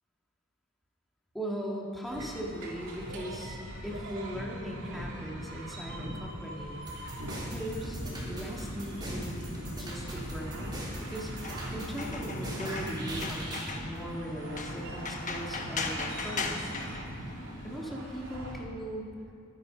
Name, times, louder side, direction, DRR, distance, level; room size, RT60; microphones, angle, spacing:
voice 1, 1.3-3.6 3.8-6.9 7.4-17.0 17.6-19.1, equal, ahead, -3 dB, 2.1 m, -39 dB
sound 1, 2.1-18.6, right 1 dB, 65° right, 3.0 m, -41 dB
sound 2, 6.9-13.7, right 1 dB, 20° right, 3.5 m, -41 dB
sound 3, 7.8-17.9, left 3 dB, 35° left, 1.2 m, -40 dB
24.0 x 9.6 x 5.3 m, 2.5 s
head